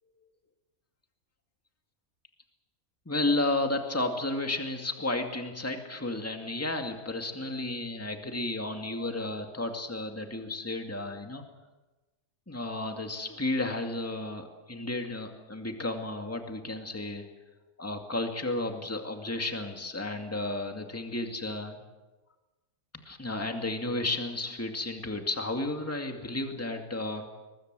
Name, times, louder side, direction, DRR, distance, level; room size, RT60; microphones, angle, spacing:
voice 1, 3.1-11.4 12.5-17.2 17.8-21.8 23.1-27.3, left 2 dB, 10° left, 4 dB, 2.2 m, -32 dB
23.0 x 21.5 x 7.7 m, 1.1 s
omnidirectional pair, 1.5 m